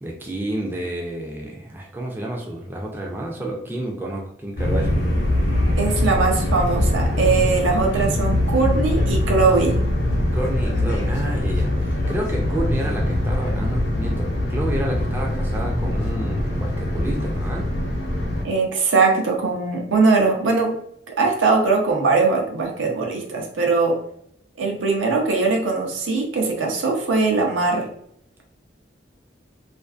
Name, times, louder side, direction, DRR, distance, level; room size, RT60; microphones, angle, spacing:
voice 1, 0.0-5.0 10.3-17.7, right 1 dB, 10° right, -1 dB, 0.3 m, -30 dB
sound 1, 4.6-18.4, left 1 dB, 70° left, 0.7 m, -22 dB
voice 2, 5.8-9.8 18.4-20.8 21.2-24.0 24.6-27.9, right 4 dB, 90° right, 1 dB, 0.6 m, -20 dB
2.5 x 2.4 x 2.3 m, 0.71 s
head